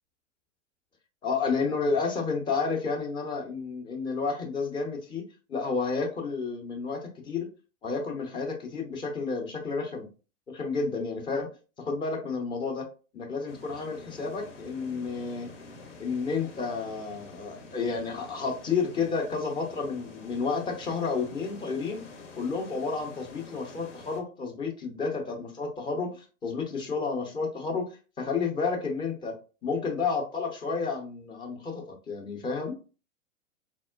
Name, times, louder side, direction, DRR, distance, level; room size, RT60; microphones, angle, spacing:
voice 1, 1.2-5.2 5.5-7.5 7.8-10.1 10.5-11.5 11.8-12.9 13.1-15.5 16.0-22.0 22.3-32.7, left 4 dB, 10° left, 2 dB, 0.5 m, -31 dB
sound 1, 13.5-24.2, left 3 dB, 70° left, 0.9 m, -48 dB
4.4 x 2.1 x 2.3 m, 0.34 s
figure-of-eight pair, 105°, 38 cm